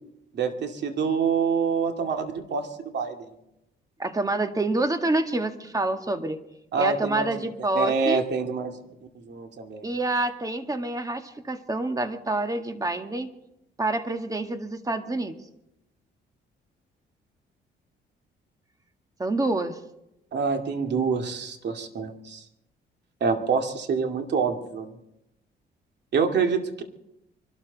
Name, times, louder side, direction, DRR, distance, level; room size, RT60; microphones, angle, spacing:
voice 1, 0.3-2.7 2.9-3.2 6.7-7.4 7.7-8.8 9.3-9.9 20.3-22.4 23.2-24.9 26.1-26.8, right 5 dB, 60° right, 5 dB, 2.4 m, -26 dB
voice 2, 4.0-6.4 6.8-8.2 9.8-13.3 13.8-15.4 19.2-19.8, right 2 dB, 15° right, 7 dB, 1.8 m, -27 dB
24.5 x 13.0 x 4.1 m, 0.86 s
cardioid pair, 90°, 20 cm